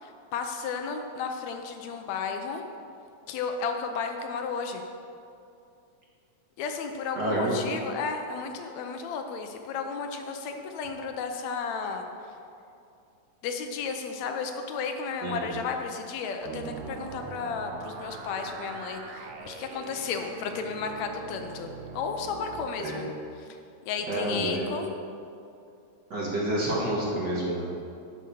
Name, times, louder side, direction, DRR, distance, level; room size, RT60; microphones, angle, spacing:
voice 1, 0.0-2.6 3.3-4.8 6.6-12.4 13.4-23.1 23.4-23.6 23.9-24.9, left 5 dB, 75° left, 5 dB, 1.9 m, -33 dB
voice 2, 7.2-7.6 15.2-15.6 22.8-23.0 24.1-24.7 26.1-27.8, right 1 dB, 40° right, -5 dB, 2.0 m, -29 dB
sound 1, 16.4-22.7, right 5 dB, 85° right, 2.2 m, -42 dB
11.0 x 6.4 x 6.9 m, 2.6 s
omnidirectional pair, 3.3 m